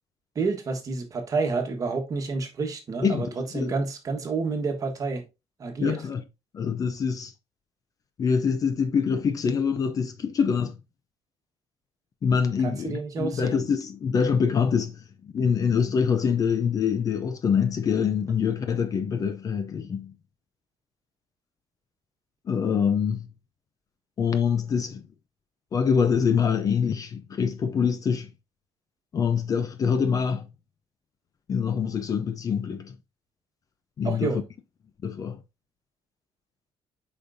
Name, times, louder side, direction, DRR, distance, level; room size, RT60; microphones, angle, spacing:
voice 1, 0.3-5.2 5.6-6.0 12.6-13.7 34.0-34.4, right 4 dB, 35° right, 1.4 m, -29 dB
voice 2, 3.0-3.7 5.8-6.2 6.5-7.3 8.2-10.8 12.2-20.1 22.5-23.3 24.2-25.0 25.7-28.3 29.1-30.5 31.5-32.9 34.0-34.4 35.0-35.4, left 6 dB, 35° left, 0.6 m, -25 dB
8.4 x 5.3 x 2.6 m
cardioid pair, 170°, 11 cm